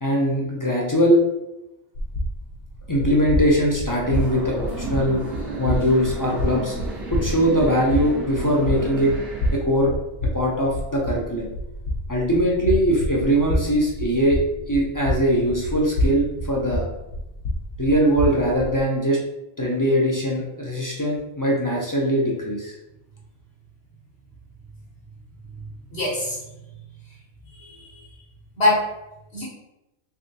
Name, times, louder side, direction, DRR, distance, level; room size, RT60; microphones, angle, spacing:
voice 1, 0.0-1.2 2.9-5.2 5.6-6.7 7.1-9.1 9.5-9.9 10.3-11.5 12.1-14.4 14.7-16.9 17.8-19.2 19.6-22.7, equal, 30° left, -3 dB, 0.4 m, -21 dB
sound 1, 1.9-18.8, left 1 dB, 85° left, 1.0 m, -29 dB
sound 2, 4.0-9.6, right 2 dB, 75° right, 1.4 m, -34 dB
voice 2, 25.5-26.4 27.5-28.0 28.6-28.9 29.3-29.4, left 2 dB, 65° left, -8 dB, 1.2 m, -24 dB
3.4 x 3.4 x 2.7 m, 0.93 s
omnidirectional pair, 1.2 m